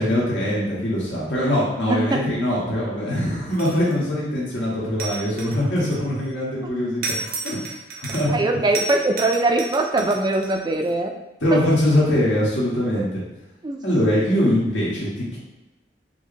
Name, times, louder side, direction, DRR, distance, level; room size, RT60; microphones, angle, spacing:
voice 1, 0.0-7.0 7.4-7.7 8.0-8.3 11.4-13.2 13.8-15.4, left 1 dB, 85° left, -6 dB, 1.5 m, -22 dB
voice 2, 1.9-2.2 8.3-11.1 11.5-11.6 12.9-13.1 13.6-13.8, right 2 dB, 25° right, 4 dB, 0.3 m, -21 dB
sound 1, 3.5-4.1 5.0-6.3 7.0-8.4 8.7-10.9, right 3 dB, 55° right, 0.7 m, -32 dB
6.0 x 2.1 x 2.7 m, 1.0 s
head